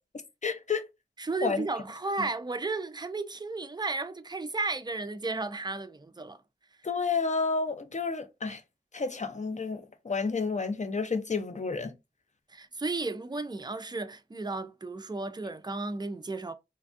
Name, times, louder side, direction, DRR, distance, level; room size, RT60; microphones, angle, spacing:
voice 1, 0.4-0.8 1.4-1.6 6.8-8.6 8.9-11.9, left 4 dB, 40° left, 0.5 m, -30 dB
voice 2, 1.2-6.4 12.5-16.5, right 3 dB, 20° right, 0.4 m, -34 dB
3.3 x 2.2 x 2.5 m
wide cardioid pair, 55°, 20 cm